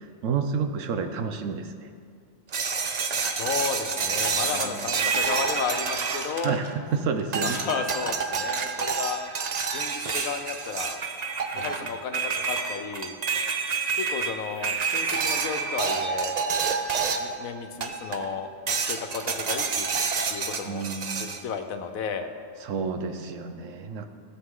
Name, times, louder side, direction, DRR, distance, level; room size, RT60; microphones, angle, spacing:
voice 1, 0.2-1.7 4.5-4.8 6.4-7.6 11.5-11.7 20.6-21.3 22.6-24.1, right 5 dB, 70° right, 7 dB, 1.1 m, -30 dB
sound 1, 2.5-6.9 7.3-17.4 17.8-18.3 18.7-21.4, right 5 dB, 50° right, 0.5 m, -28 dB
voice 2, 3.1-6.6 7.4-9.2 9.7-11.0 11.5-13.2 14.0-16.4 17.2-18.5 18.8-19.9 20.3-20.9 21.2-22.3, left 6 dB, 85° left, 7 dB, 1.2 m, -33 dB
16.0 x 6.9 x 3.8 m, 2.1 s
omnidirectional pair, 1.4 m